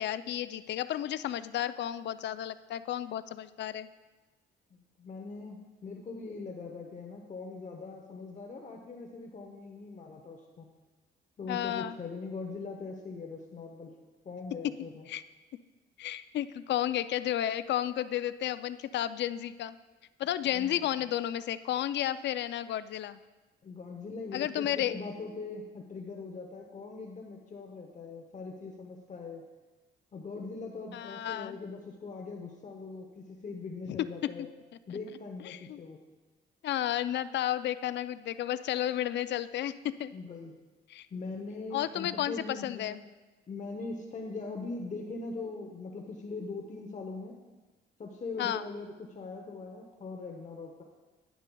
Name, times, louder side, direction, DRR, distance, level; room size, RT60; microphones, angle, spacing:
voice 1, 0.0-3.9 11.5-12.0 14.6-14.7 15.1-15.2 16.0-19.8 20.2-23.2 24.3-25.0 30.9-31.6 33.9-34.0 35.4-35.8 36.6-40.1 40.9-41.1 41.7-43.0 48.4-48.7, left 12 dB, 65° left, 14 dB, 0.4 m, -32 dB
voice 2, 4.7-10.7 11.4-13.9 14.2-15.1 20.4-20.9 23.6-29.4 30.1-34.5 34.9-36.0 40.1-40.6 41.1-43.0 43.5-47.4 48.0-50.8, left 3 dB, 40° left, 2 dB, 0.9 m, -41 dB
10.5 x 10.0 x 2.3 m, 1.2 s
cardioid pair, 90°, 20 cm